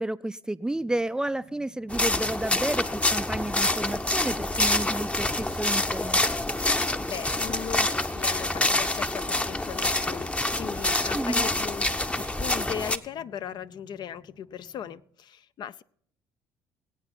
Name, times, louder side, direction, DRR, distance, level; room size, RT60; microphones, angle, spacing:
voice 1, 0.0-6.2 11.1-11.5, right 1 dB, 10° right, 16 dB, 0.4 m, -31 dB
sound 1, 0.6-14.9, left 1 dB, 80° left, 6.9 m, -57 dB
sound 2, 1.9-13.0, left 2 dB, 15° left, 0.7 m, -26 dB
voice 2, 6.7-15.8, left 9 dB, 50° left, 15 dB, 0.5 m, -38 dB
19.5 x 8.7 x 4.3 m, 0.64 s
hypercardioid pair, 60°, 9 cm